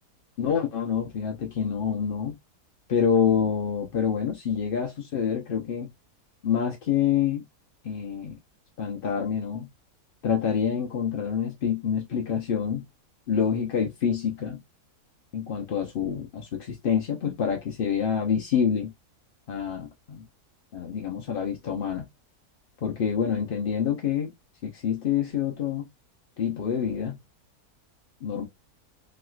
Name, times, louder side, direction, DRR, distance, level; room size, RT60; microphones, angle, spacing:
voice 1, 0.4-2.4 2.9-5.9 6.4-7.4 7.8-8.4 8.8-9.7 10.2-12.8 13.3-14.6 15.3-18.9 19.5-20.3 20.7-22.1 22.8-24.3 24.6-25.9 26.4-27.2 28.2-28.5, left 7 dB, 65° left, 0.5 m, -27 dB
3.1 x 2.9 x 2.3 m
omnidirectional pair, 1.6 m